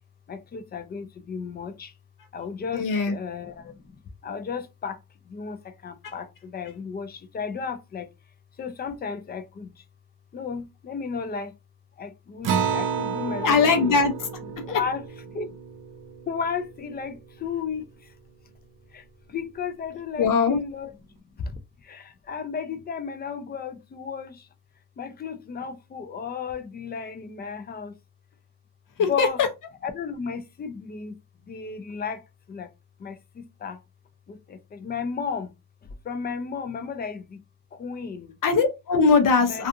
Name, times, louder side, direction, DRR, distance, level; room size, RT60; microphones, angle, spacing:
voice 1, 0.3-1.9 2.3-3.5 4.2-5.0 5.3-5.6 5.8-6.2 6.5-8.1 8.6-9.7 10.3-11.5 12.0-14.0 14.7-15.0 15.3-15.5 16.3-17.2 17.4-17.8 19.3-20.9 21.9-22.0 22.3-24.3 25.0-27.9 29.1-29.4 29.8-31.1 31.5-32.2 32.5-32.7 33.0-33.1 33.6-33.8 34.8-35.5 36.1-37.2 37.8-38.3 39.5-39.7, left 6 dB, 25° left, 0.4 m, -33 dB
voice 2, 2.7-3.2 6.0-6.1 13.4-14.3 14.7-14.8 20.2-20.6 29.0-29.5 38.4-39.7, left 5 dB, 55° left, 0.7 m, -21 dB
Acoustic guitar, 12.4-17.3, right 7 dB, 55° right, 0.6 m, -31 dB
2.4 x 2.4 x 2.6 m
cardioid pair, 140°, 38 cm